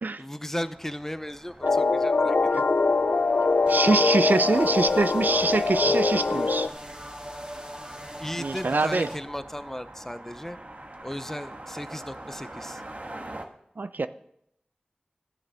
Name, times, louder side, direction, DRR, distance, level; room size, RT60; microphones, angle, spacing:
voice 1, 0.2-2.6 5.9-6.0 8.2-10.6 11.0-12.8, left 1 dB, 15° left, 12 dB, 0.7 m, -36 dB
sound 1, 0.6-13.5, right 1 dB, 55° right, 1.4 m, -45 dB
sound 2, 1.6-6.7, left 3 dB, 75° left, 0.4 m, -23 dB
sound 3, 3.7-9.2, equal, 30° right, 1.8 m, -39 dB
voice 2, 3.7-6.7 8.4-9.1 13.8-14.1, right 3 dB, 80° right, 12 dB, 0.5 m, -24 dB
12.5 x 7.4 x 6.8 m, 0.74 s
wide cardioid pair, 45°, 3 cm